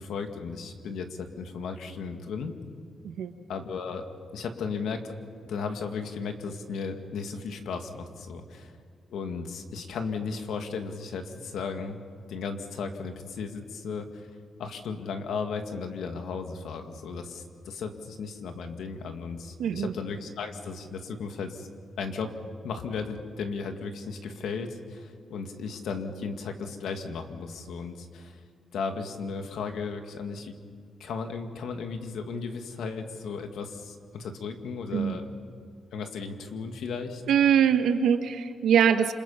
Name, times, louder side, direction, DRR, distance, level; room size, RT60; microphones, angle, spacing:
voice 1, 0.0-2.5 3.5-4.0 4.3-5.1 5.4-8.8 9.1-12.0 12.3-14.3 14.6-21.7 22.0-22.3 22.6-28.4 28.7-30.5 31.0-35.4 35.9-37.2, left 5 dB, 80° left, 5 dB, 2.2 m, -35 dB
voice 2, 19.6-19.9 34.9-35.2 37.3-39.1, right 8 dB, 90° right, 7 dB, 1.5 m, -22 dB
28.5 x 26.5 x 5.8 m, 2.1 s
wide cardioid pair, 165°, 0 cm